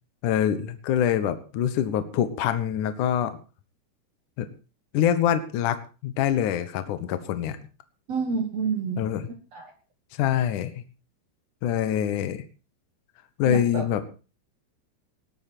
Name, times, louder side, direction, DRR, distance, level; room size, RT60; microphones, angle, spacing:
voice 1, 0.2-3.4 4.4-4.5 4.9-5.8 6.0-7.6 9.0-9.2 10.2-10.7 11.6-12.4 13.4-14.0, left 10 dB, 65° left, 10 dB, 2.1 m, -25 dB
voice 2, 8.1-9.0 9.5-9.7 13.4-14.1, right 5 dB, 60° right, 5 dB, 1.7 m, -29 dB
19.5 x 11.5 x 4.5 m, 0.35 s
omnidirectional pair, 5.2 m